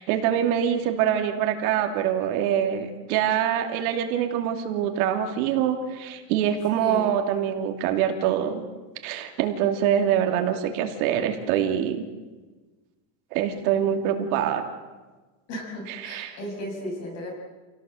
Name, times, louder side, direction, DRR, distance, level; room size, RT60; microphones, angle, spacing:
voice 1, 0.0-8.6 9.0-12.0 13.3-14.6 15.9-16.4, right 9 dB, 60° right, 4 dB, 2.9 m, -24 dB
voice 2, 6.8-7.2 15.5-17.3, equal, 30° left, 2 dB, 6.3 m, -35 dB
28.5 x 18.0 x 7.8 m, 1.3 s
cardioid pair, 180°, 48 cm